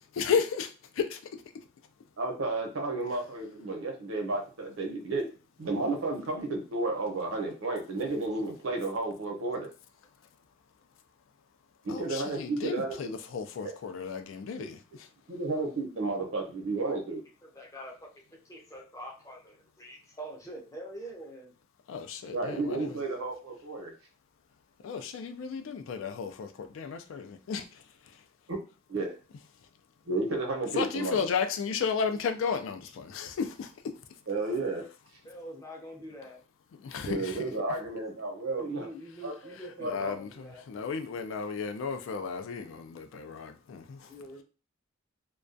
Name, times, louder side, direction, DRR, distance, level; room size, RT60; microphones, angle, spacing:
voice 1, 0.1-1.2 11.9-15.1 21.9-23.0 24.8-27.6 30.8-33.9 36.8-37.5 39.8-40.3 40.7-44.0, left 6 dB, 70° left, 0.3 m, -33 dB
voice 2, 2.2-5.3 5.6-9.7 11.8-13.1 13.6-13.7 14.5-14.7 15.3-17.2 22.3-23.9 28.5-28.6 28.9-29.1 30.1-31.2 34.3-34.9 37.0-38.9 39.2-39.3 39.8-40.2, right 2 dB, 75° right, 0.8 m, -32 dB
voice 3, 17.4-18.1 18.5-21.5 22.6-22.8 35.2-36.4 38.5-40.6 44.1-44.4, right 1 dB, 15° left, 0.5 m, -45 dB
2.2 x 2.2 x 2.5 m
head